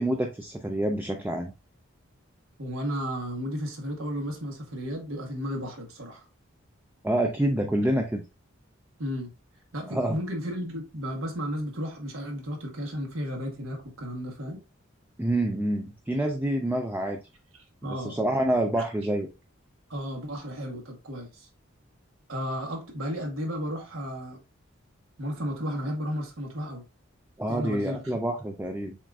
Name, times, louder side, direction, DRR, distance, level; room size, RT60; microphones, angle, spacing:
voice 1, 0.0-1.5 7.0-8.2 9.9-10.2 15.2-17.2 17.8-19.3 27.4-29.0, right 1 dB, 10° right, 0.3 m, -27 dB
voice 2, 2.6-6.2 9.0-9.3 9.7-14.6 17.5-18.2 19.9-21.5 22.3-24.4 25.2-26.8 27.5-28.2, equal, 85° right, 1.3 m, -33 dB
7.1 x 2.5 x 2.4 m
head